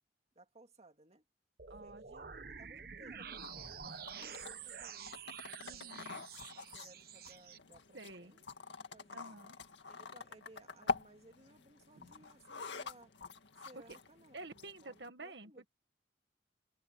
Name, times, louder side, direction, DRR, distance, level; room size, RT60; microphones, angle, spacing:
voice 1, 0.4-1.2 1.8-5.2 5.4-5.9 6.5-8.5 8.9-9.4 9.9-13.1 13.6-15.7, right 1 dB, 35° right, 2.4 m, -61 dB
sound 1, 1.6-7.6, right 7 dB, 55° right, 1.2 m, -48 dB
voice 2, 1.7-2.0 5.6-6.2 7.9-8.3 9.1-9.6 11.9-12.1 13.6-14.0 14.3-15.7, right 2 dB, 75° right, 1.7 m, -50 dB
sound 2, 3.4-15.1, left 4 dB, 85° left, 1.9 m, -46 dB
open air
head